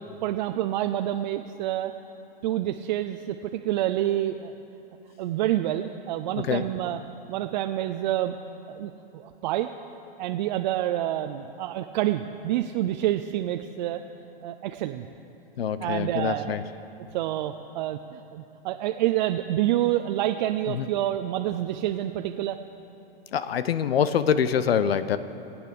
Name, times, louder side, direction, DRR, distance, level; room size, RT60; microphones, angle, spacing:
voice 1, 0.2-1.9 2.4-4.5 5.2-7.0 7.3-8.4 8.7-9.7 10.2-14.0 14.4-15.0 15.8-16.6 17.1-22.6, right 13 dB, 50° right, 7 dB, 0.6 m, -28 dB
voice 2, 15.6-16.6 20.7-20.9 23.3-25.2, left 8 dB, 85° left, 13 dB, 0.8 m, -25 dB
20.5 x 8.9 x 6.8 m, 2.9 s
hypercardioid pair, 140°, 30 cm